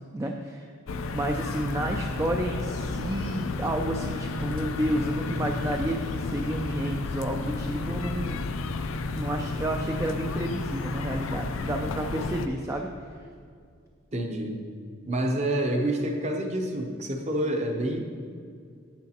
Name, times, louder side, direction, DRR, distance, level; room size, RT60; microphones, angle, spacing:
voice 1, 0.1-0.7 1.1-8.4 9.1-12.9, right 1 dB, 15° right, 2 dB, 0.3 m, -30 dB
sound 1, 0.9-12.5, left 3 dB, 85° left, 0.5 m, -32 dB
voice 2, 14.1-14.6 15.0-18.0, right 1 dB, 35° right, 3 dB, 0.7 m, -28 dB
10.0 x 8.2 x 2.9 m, 2.2 s
head